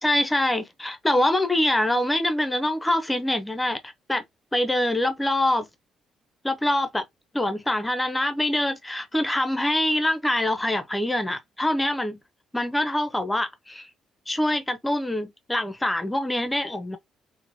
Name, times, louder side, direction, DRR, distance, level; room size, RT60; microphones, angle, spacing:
voice 1, 0.0-4.2 4.5-5.7 6.4-7.0 7.3-12.2 12.5-13.9 14.3-17.0, left 1 dB, 15° left, 0.7 m, -24 dB
2.9 x 2.1 x 2.7 m
hypercardioid pair, 55°, 0 cm